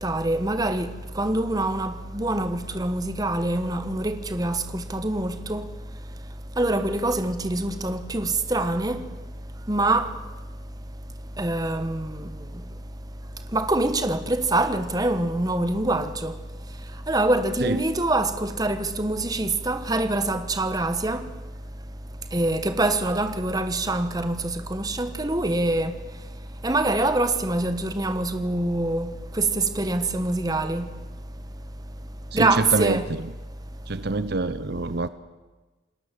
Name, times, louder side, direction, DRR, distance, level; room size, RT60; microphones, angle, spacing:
voice 1, 0.0-0.9 1.2-5.6 6.6-9.0 9.7-10.1 11.4-12.2 13.5-16.3 17.1-21.2 22.3-25.9 26.6-29.1 29.4-30.9 32.3-33.0, right 2 dB, 20° right, 1.3 m, -25 dB
voice 2, 32.3-33.0 33.9-35.1, right 3 dB, 55° right, 0.8 m, -25 dB
28.5 x 20.0 x 7.7 m
head